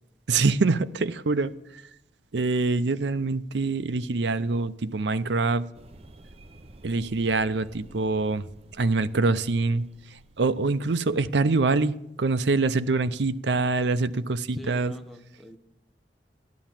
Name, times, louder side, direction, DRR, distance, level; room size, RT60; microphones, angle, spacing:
voice 1, 0.3-1.8 2.3-5.7 6.8-8.5 8.7-14.9, right 3 dB, 75° right, 0.6 m, -25 dB
sound 1, 5.7-11.2, right 1 dB, 35° right, 0.7 m, -51 dB
voice 2, 14.5-15.6, left 1 dB, ahead, 0.8 m, -42 dB
13.0 x 11.5 x 7.4 m
head